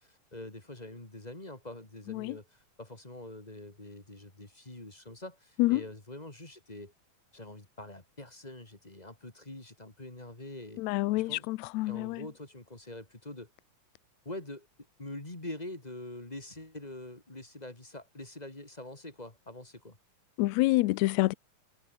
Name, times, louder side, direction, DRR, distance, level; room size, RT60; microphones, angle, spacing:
voice 1, 0.0-6.9 7.3-10.8 11.1-11.5 11.9-13.5 14.2-14.7 15.0-20.0, left 1 dB, 15° left, 2.5 m, -45 dB
voice 2, 10.8-12.2 20.4-21.3, left 19 dB, 80° left, 1.6 m, -27 dB
omnidirectional pair, 3.8 m